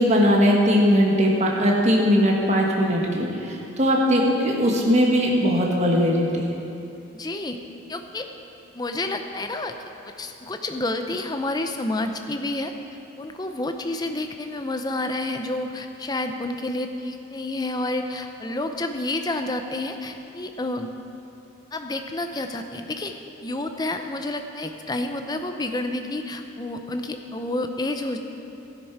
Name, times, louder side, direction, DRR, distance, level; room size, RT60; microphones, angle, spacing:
voice 1, 0.0-6.5, equal, 35° right, -1 dB, 1.5 m, -20 dB
voice 2, 7.1-7.6 7.9-8.3 8.7-9.8 10.0-12.7 13.2-20.9 21.7-23.1 23.4-28.2, left 2 dB, 20° left, 6 dB, 0.6 m, -29 dB
12.5 x 11.0 x 4.7 m, 2.8 s
head